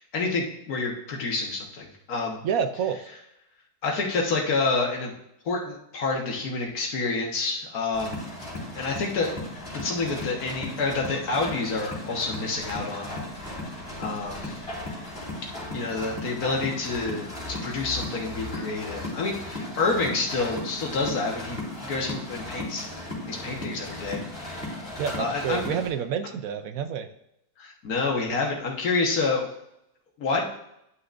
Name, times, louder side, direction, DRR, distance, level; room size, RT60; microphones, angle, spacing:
voice 1, 0.0-2.4 3.8-5.1 5.4-8.2 8.7-9.3 9.7-13.1 14.0-14.6 15.7-22.8 23.3-24.7 25.2-25.6 27.6-29.5 30.2-30.5, left 3 dB, 70° left, -1 dB, 1.8 m, -28 dB
voice 2, 2.4-3.0 25.0-27.1, right 7 dB, 70° right, 9 dB, 1.0 m, -28 dB
sound 1, 7.9-25.9, left 1 dB, 35° left, 3.7 m, -36 dB
11.0 x 5.8 x 2.6 m, 0.80 s
omnidirectional pair, 1.6 m